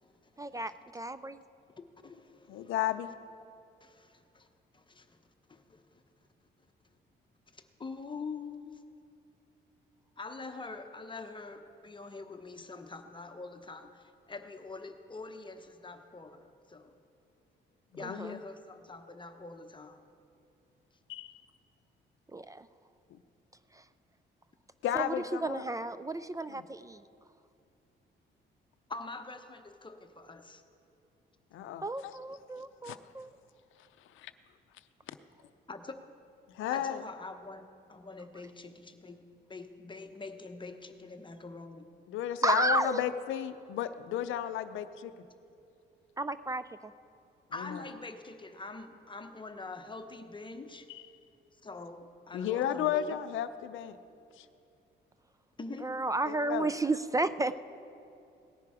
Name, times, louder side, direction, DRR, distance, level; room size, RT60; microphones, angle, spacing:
voice 1, 0.4-1.4 18.0-18.3 22.3-22.7 23.7-23.8 24.9-25.1 25.4-27.1 31.8-33.3 42.4-43.0 46.2-46.9 55.8-57.5, right 2 dB, 15° right, 14 dB, 0.4 m, -32 dB
voice 2, 1.8-2.7 3.8-4.5 4.7-5.2 5.5-6.0 7.5-8.8 10.2-16.9 18.0-20.0 28.9-30.6 35.7-36.0 36.7-41.9 47.5-50.9 51.6-53.2 55.6-56.0, left 3 dB, 25° left, 7 dB, 0.9 m, -45 dB
voice 3, 2.5-3.1 18.0-18.4 21.1-21.3 24.8-25.6 26.5-26.6 31.5-32.1 32.8-33.0 34.2-34.3 35.1-35.2 36.5-37.0 42.1-45.1 47.6-47.8 50.9-51.1 52.3-54.0 54.4-54.5 56.3-56.7, left 10 dB, 80° left, 9 dB, 0.6 m, -33 dB
18.0 x 10.5 x 4.9 m, 2.6 s
cardioid pair, 90°, 20 cm